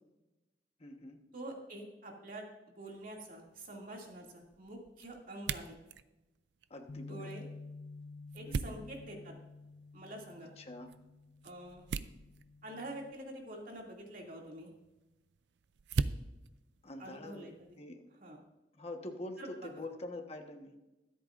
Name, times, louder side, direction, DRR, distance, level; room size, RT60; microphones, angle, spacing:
voice 1, 0.8-1.2 6.7-7.3 8.5-8.8 10.6-10.9 16.8-17.5 17.8-18.1 18.7-20.8, left 1 dB, 35° left, 4 dB, 1.3 m, -45 dB
voice 2, 1.3-2.5 2.8-5.7 7.1-7.5 8.3-9.3 9.9-10.5 11.4-11.9 12.6-14.7 17.0-17.5 18.2-18.4 19.4-19.8, right 1 dB, 50° right, -1 dB, 2.5 m, -46 dB
sound 1, 2.9-17.8, right 5 dB, 75° right, 0.4 m, -44 dB
Bass guitar, 6.9-13.1, left 3 dB, 60° left, 0.4 m, -51 dB
23.5 x 8.4 x 2.5 m, 1.0 s
head